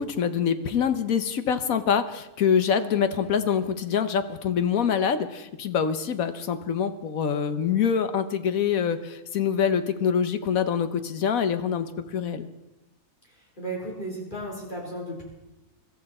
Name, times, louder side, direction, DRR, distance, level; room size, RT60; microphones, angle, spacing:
voice 1, 0.0-12.5, left 7 dB, 65° left, 10 dB, 1.3 m, -25 dB
voice 2, 13.6-15.2, right 1 dB, 30° left, -3 dB, 4.4 m, -34 dB
22.0 x 14.0 x 4.3 m, 0.97 s
omnidirectional pair, 1.7 m